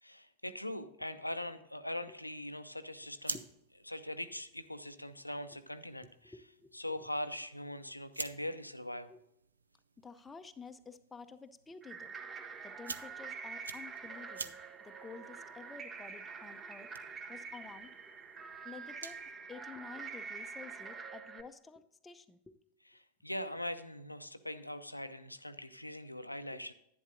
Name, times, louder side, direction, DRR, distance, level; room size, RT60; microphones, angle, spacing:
voice 1, 0.0-3.4 3.9-6.3 6.7-9.1 23.2-26.7, left 1 dB, 85° left, 11 dB, 0.6 m, -41 dB
sound 1, 2.9-19.3, right 4 dB, 75° right, 0.5 m, -50 dB
voice 2, 6.0-6.7 9.1-9.2 10.0-12.1 12.6-14.6 14.8-16.9 17.3-17.9 18.6-19.2 19.5-22.6 26.5-26.6, left 4 dB, 15° left, 9 dB, 0.6 m, -51 dB
sound 2, 11.8-21.4, right 5 dB, 20° right, 0.8 m, -46 dB
11.0 x 10.0 x 2.6 m, 0.79 s
figure-of-eight pair, 90°, 0 cm